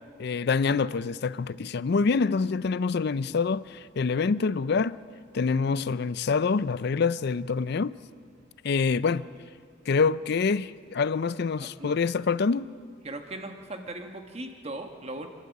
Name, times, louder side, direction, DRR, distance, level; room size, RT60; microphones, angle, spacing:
voice 1, 0.2-5.0 5.3-8.0 8.6-9.3 9.9-12.7, left 5 dB, 55° left, 0.4 m, -26 dB
voice 2, 11.6-11.9 13.0-15.3, right 2 dB, 30° right, 1.4 m, -38 dB
28.0 x 12.5 x 8.3 m
head